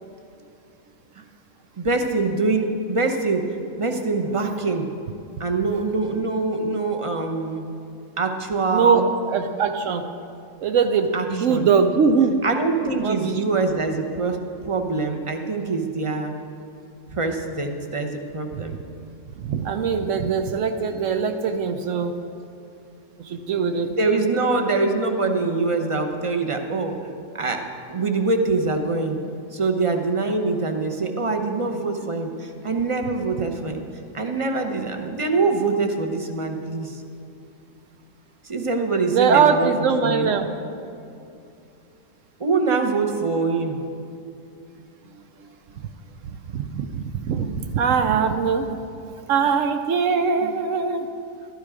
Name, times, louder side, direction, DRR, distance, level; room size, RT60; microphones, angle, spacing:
voice 1, 1.8-3.4 3.8-4.9 5.4-7.7 8.2-9.1 11.1-11.7 12.4-16.3 17.1-18.8 24.0-27.0 27.3-27.6 27.9-29.2 29.5-33.8 34.1-37.0 38.4-40.3 42.4-43.8 50.4-50.5, right 3 dB, 30° right, 4 dB, 0.7 m, -24 dB
voice 2, 8.7-10.0 10.6-12.4 13.0-13.4 19.4-22.1 23.2-23.9 39.1-40.5 46.5-48.8 49.3-51.1, right 5 dB, 65° right, 7 dB, 0.9 m, -21 dB
12.5 x 11.5 x 4.9 m, 2.6 s
omnidirectional pair, 1.5 m